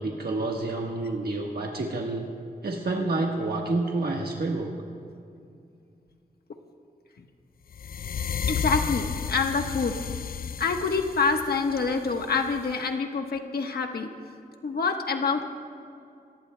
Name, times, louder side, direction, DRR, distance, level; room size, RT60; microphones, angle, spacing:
voice 1, 0.0-2.3 2.6-4.7, right 2 dB, 80° right, -1 dB, 1.4 m, -28 dB
sound 1, 7.7-12.8, left 7 dB, 70° left, 0.4 m, -33 dB
voice 2, 8.5-9.9 10.6-14.1 14.6-15.5, left 4 dB, 85° left, 4 dB, 1.2 m, -26 dB
26.0 x 18.0 x 2.2 m, 2.4 s
wide cardioid pair, 90°, 16 cm